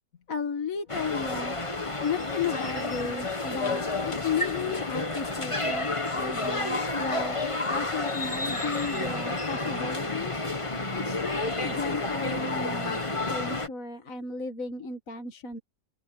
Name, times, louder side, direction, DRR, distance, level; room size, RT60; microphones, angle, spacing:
voice 1, 0.3-1.6 2.0-7.4 7.7-10.4 10.9-15.6, left 5 dB, 45° left, 1.9 m, -34 dB
sound 1, 0.9-13.7, left 2 dB, 20° left, 1.4 m, -30 dB
omnidirectional pair, 2.0 m